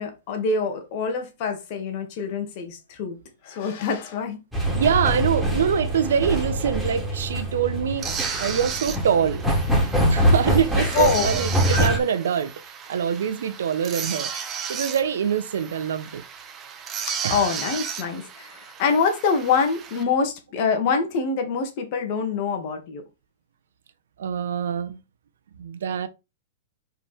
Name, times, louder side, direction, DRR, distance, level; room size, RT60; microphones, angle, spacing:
voice 1, 0.0-3.2 3.4-4.4 10.9-11.3 17.3-23.0, left 5 dB, 55° left, 2.3 m, -25 dB
sound 1, 4.5-12.0, equal, ahead, 3.1 m, -24 dB
voice 2, 4.7-8.1 8.4-9.4 10.1-14.3 14.7-16.2 17.2-17.4 24.2-25.0 25.6-26.1, right 7 dB, 75° right, 1.0 m, -24 dB
sound 2, 8.0-20.0, right 7 dB, 30° right, 1.5 m, -34 dB
5.3 x 5.0 x 4.5 m
hypercardioid pair, 115°, 0 cm